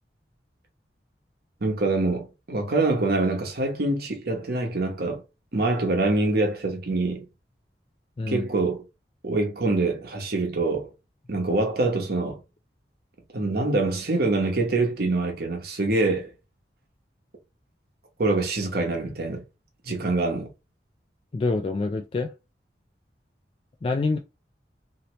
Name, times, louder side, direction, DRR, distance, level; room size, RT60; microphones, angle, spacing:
voice 1, 1.6-5.2 5.5-7.3 8.3-8.8 9.2-10.9 11.3-12.4 13.3-16.3 18.2-19.4 19.8-20.5, right 2 dB, 60° right, 0.9 m, -25 dB
voice 2, 21.3-22.3 23.8-24.2, left 3 dB, 30° left, 0.3 m, -26 dB
2.9 x 2.8 x 3.1 m
head